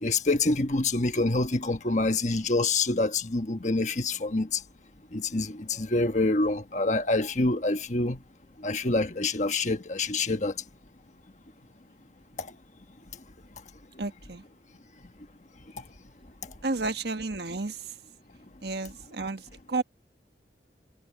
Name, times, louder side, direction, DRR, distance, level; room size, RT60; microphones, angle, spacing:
voice 1, 0.0-4.6 5.1-8.2 8.6-10.5, left 2 dB, 40° left, 1.4 m, -26 dB
voice 2, 14.0-14.4 16.6-17.8 18.6-19.8, right 3 dB, 65° right, 1.4 m, -32 dB
head